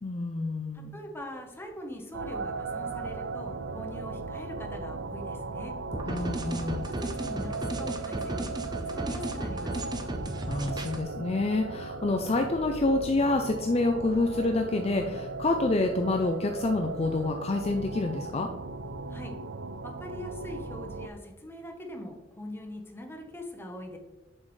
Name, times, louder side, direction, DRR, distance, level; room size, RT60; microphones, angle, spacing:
voice 1, 0.0-0.9 6.1-6.9 10.5-18.5, left 2 dB, 35° left, 4 dB, 0.5 m, -28 dB
voice 2, 0.7-5.7 6.7-9.9 19.1-19.4 19.8-24.0, left 1 dB, 15° left, 2 dB, 1.1 m, -42 dB
sound 1, 2.1-21.1, right 3 dB, 70° right, 0.5 m, -37 dB
sound 2, 5.9-11.0, right 1 dB, 25° right, 0.6 m, -35 dB
7.6 x 6.3 x 3.2 m, 1.1 s
head